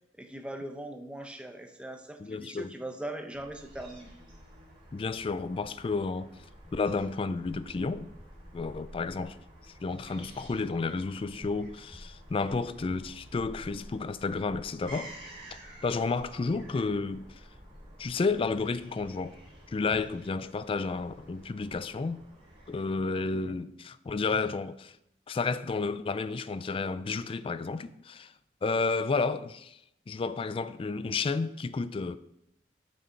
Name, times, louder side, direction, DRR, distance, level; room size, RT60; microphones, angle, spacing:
voice 1, 0.1-4.1 23.3-23.6, right 1 dB, 5° right, 0.7 m, -40 dB
voice 2, 2.2-2.7 4.9-6.3 6.7-8.1 8.5-9.4 9.8-15.1 15.8-17.3 18.0-19.4 19.7-22.2 22.7-24.9 25.3-28.3 28.6-29.8 30.1-32.2, left 4 dB, 30° left, 0.3 m, -31 dB
Fowl / Gull seagull, 3.3-23.2, equal, 30° right, 2.8 m, -50 dB
6.5 x 6.3 x 4.5 m
head